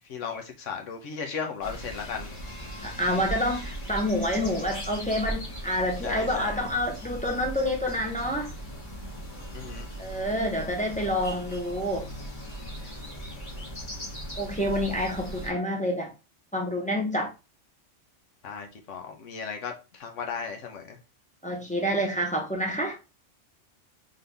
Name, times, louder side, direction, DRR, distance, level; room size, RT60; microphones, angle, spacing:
voice 1, 0.1-2.3 3.2-3.3 6.0-6.6 9.5-9.9 18.4-21.0, left 6 dB, 85° left, 1.3 m, -36 dB
sound 1, 1.6-15.5, right 1 dB, 40° left, 2.0 m, -38 dB
voice 2, 2.8-8.5 10.0-12.1 14.4-16.1 16.5-17.3 21.4-23.0, equal, 5° left, 0.8 m, -28 dB
3.9 x 3.8 x 3.3 m
omnidirectional pair, 1.2 m